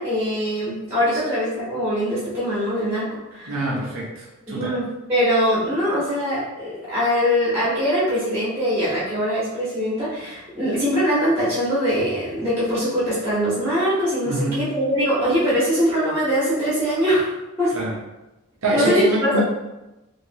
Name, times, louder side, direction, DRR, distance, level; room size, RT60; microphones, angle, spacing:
voice 1, 0.0-3.7 4.5-17.3 17.6-17.7 18.7-19.4, equal, 10° right, -10 dB, 1.1 m, -22 dB
voice 2, 3.5-4.7 14.3-14.6 17.7-17.9 18.6-19.4, right 1 dB, 70° right, -4 dB, 0.8 m, -25 dB
3.1 x 2.9 x 2.8 m, 0.99 s
head